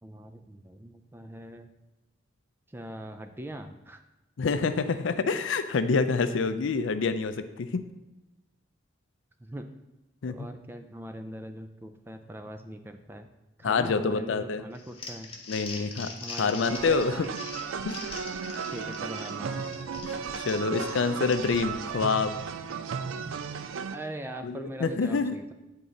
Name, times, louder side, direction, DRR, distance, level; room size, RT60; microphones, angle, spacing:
voice 1, 0.0-1.7 2.7-4.0 9.4-9.7 10.3-13.3 13.6-15.4 16.2-17.1 18.7-19.6 23.9-25.5, right 1 dB, 10° right, 7 dB, 0.3 m, -41 dB
voice 2, 4.4-7.8 10.2-10.5 13.6-14.6 15.5-16.1 16.4-17.3 17.8-18.0 20.0-22.3 24.4-25.4, left 4 dB, 70° left, 10 dB, 0.4 m, -27 dB
Crumpling crinkling, 14.7-21.7, left 4 dB, 30° left, 0.8 m, -42 dB
sound 1, 16.6-24.0, right 6 dB, 85° right, 0.4 m, -35 dB
8.6 x 3.7 x 4.0 m, 1.0 s
head